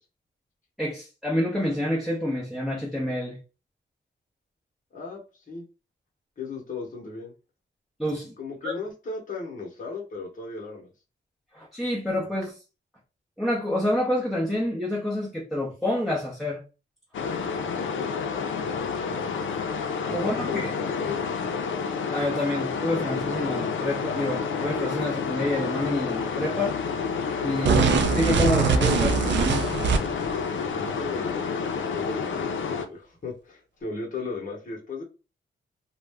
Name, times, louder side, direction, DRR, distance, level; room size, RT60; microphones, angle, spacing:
voice 1, 0.8-3.4 8.0-8.3 8.6-8.7 11.5-12.6 13.4-16.6 19.0-19.5 20.0-20.7 22.1-26.7 27.4-29.7, left 1 dB, ahead, 0.6 m, -28 dB
voice 2, 4.9-5.6 6.4-7.3 8.4-10.9 18.0-18.1 20.1-21.2 30.7-32.6 32.9-35.0, left 4 dB, 40° left, 0.8 m, -36 dB
sound 1, 17.1-32.9, left 5 dB, 80° left, 0.5 m, -29 dB
sound 2, 27.6-30.3, right 6 dB, 65° right, 0.4 m, -22 dB
2.4 x 2.1 x 3.3 m
wide cardioid pair, 130°, 20 cm